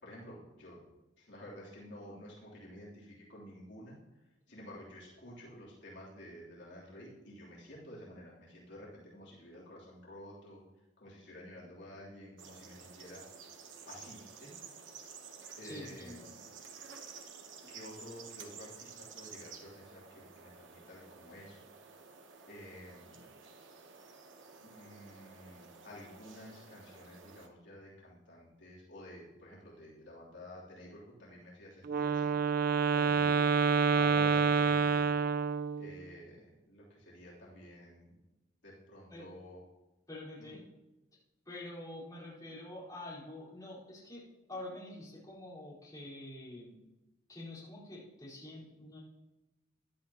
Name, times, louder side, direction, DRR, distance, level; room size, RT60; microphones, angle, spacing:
voice 1, 0.0-0.8 1.2-4.0 4.5-10.6 11.0-13.2 13.9-14.5 15.6-16.3 17.7-21.6 22.5-23.3 24.6-32.3 33.0-33.5 33.9-35.1 35.8-38.2 38.6-39.6 40.5-40.6, left 1 dB, 70° left, -6 dB, 3.4 m, -51 dB
sound 1, 12.4-27.5, right 5 dB, 80° right, 1.1 m, -52 dB
voice 2, 15.6-16.3 17.6-17.7 32.9-33.4 39.1-39.3 40.1-40.6 41.5-44.2 44.5-46.7 47.3-49.0, left 1 dB, 20° left, -8 dB, 4.5 m, -47 dB
Wind instrument woodwind instrument, 31.9-36.0, right 5 dB, 50° right, 0.4 m, -28 dB
15.0 x 11.5 x 3.0 m, 1.0 s
head